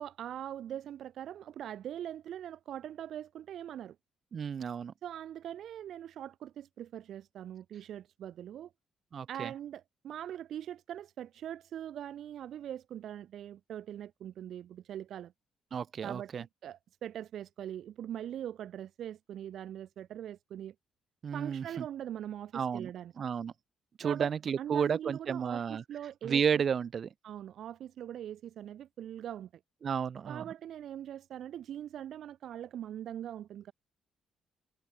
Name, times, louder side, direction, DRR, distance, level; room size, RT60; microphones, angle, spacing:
voice 1, 0.0-4.0 5.0-8.7 9.3-15.3 16.0-20.7 21.3-23.1 24.0-24.3 24.6-26.6 27.2-29.5 30.3-33.7, right 10 dB, 70° right, 2.1 m, -42 dB
voice 2, 4.3-4.9 9.1-9.5 15.7-16.4 21.2-21.8 22.5-22.9 23.2-23.5 24.0-25.8 26.2-27.1 29.8-30.4, right 7 dB, 50° right, 1.3 m, -32 dB
cardioid pair, 90°, 0 cm